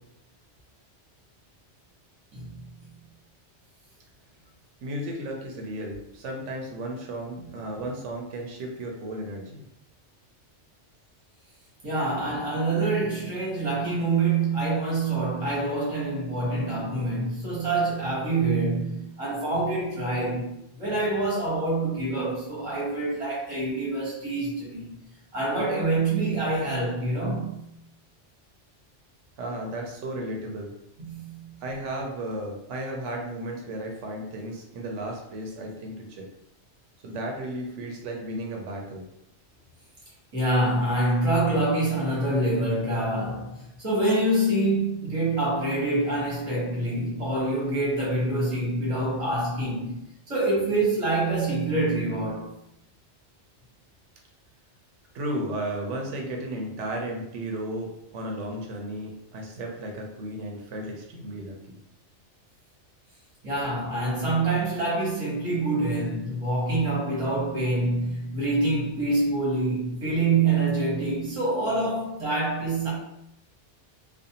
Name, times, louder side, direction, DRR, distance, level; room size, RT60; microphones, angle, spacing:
voice 1, 2.3-2.7 11.8-24.9 25.3-27.6 31.0-31.6 40.3-50.0 50.3-52.5 63.4-72.9, right 2 dB, 30° right, 1.0 m, -26 dB
voice 2, 4.8-9.6 29.4-30.7 31.6-36.3 37.0-39.0 55.1-61.8, right 1 dB, 90° right, 0.9 m, -34 dB
2.5 x 2.2 x 2.7 m
omnidirectional pair, 1.2 m